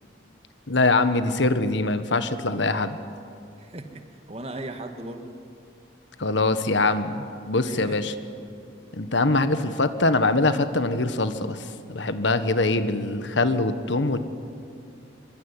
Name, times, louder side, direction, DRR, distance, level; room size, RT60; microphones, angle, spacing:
voice 1, 0.7-3.0 6.2-8.1 8.9-14.2, left 2 dB, 75° left, 11 dB, 1.4 m, -23 dB
voice 2, 3.6-5.4 7.7-8.0, right 1 dB, 30° right, 7 dB, 1.8 m, -37 dB
24.5 x 23.0 x 9.9 m, 2.5 s
head